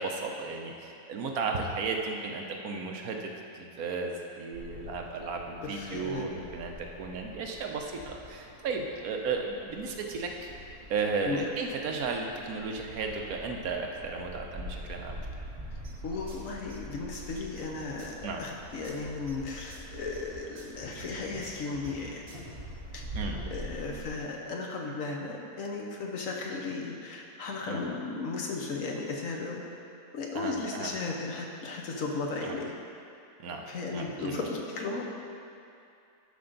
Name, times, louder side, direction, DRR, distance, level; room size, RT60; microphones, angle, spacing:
voice 1, 0.0-10.5 10.9-15.2 18.2-18.4 23.1-23.4 27.7-27.8 30.3-30.9 32.4-32.5 33.4-33.7 33.9-34.4, right 4 dB, 70° right, 2 dB, 1.2 m, -34 dB
sound 1, 4.5-24.1, right 1 dB, 40° right, 2.3 m, -45 dB
voice 2, 5.6-6.3 11.2-11.4 16.0-22.2 22.9-23.1 23.5-29.6 30.1-32.8 33.7-35.0, left 3 dB, 60° left, 0 dB, 1.2 m, -35 dB
sound 2, 15.8-22.5, right 1 dB, 55° right, 1.8 m, -50 dB
12.0 x 5.5 x 3.9 m, 2.5 s
omnidirectional pair, 1.7 m